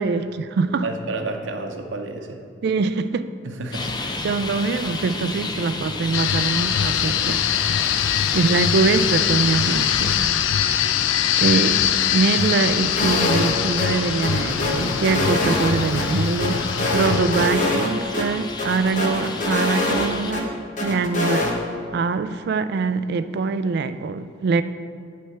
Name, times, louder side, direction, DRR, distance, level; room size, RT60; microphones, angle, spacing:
voice 1, 0.0-0.9 2.6-3.3 4.2-8.0 8.3-10.3 10.6-11.0 11.4-20.5 20.8-21.6 21.9-24.6, right 4 dB, 60° right, 12 dB, 0.3 m, -23 dB
voice 2, 0.8-2.4 3.4-3.9, right 2 dB, 85° right, 4 dB, 0.8 m, -30 dB
Traffic noise roadway noise, 3.7-20.3, left 3 dB, 20° left, 0.5 m, -32 dB
sound 1, 6.1-17.5, left 10 dB, 85° left, 0.3 m, -23 dB
sound 2, 13.0-13.5 13.8-13.9 14.2-16.0 16.4-17.9 18.1-18.2 18.6-20.4 20.8-21.5, left 2 dB, 40° left, 1.0 m, -24 dB
9.2 x 3.4 x 6.5 m, 2.3 s
head